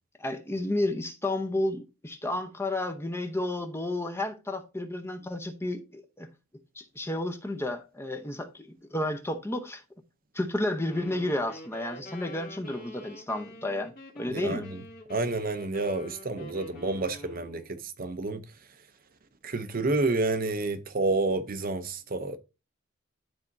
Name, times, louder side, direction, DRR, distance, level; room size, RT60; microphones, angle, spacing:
voice 1, 0.2-6.3 6.8-9.8 10.3-14.7, left 1 dB, 10° left, 0.8 m, -32 dB
sound 1, 10.8-17.7, left 1 dB, 45° left, 1.8 m, -46 dB
voice 2, 14.3-14.8 15.1-18.4 19.4-22.4, right 3 dB, 45° right, 0.7 m, -29 dB
12.0 x 4.3 x 2.6 m
head